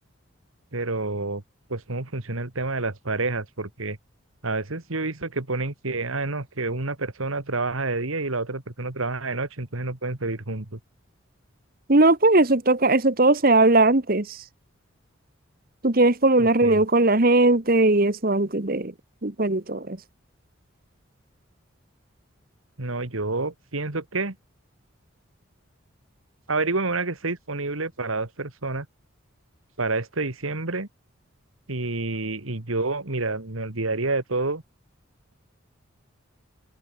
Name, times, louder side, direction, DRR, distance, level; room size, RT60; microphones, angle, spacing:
voice 1, 0.7-1.4 1.7-4.0 4.4-10.8 16.4-16.8 22.8-24.4 26.5-28.9 29.8-30.9 31.7-34.6, right 3 dB, 85° right, 2.2 m, -28 dB
voice 2, 11.9-14.4 15.8-18.9 19.2-20.0, right 2 dB, 45° right, 1.5 m, -19 dB
head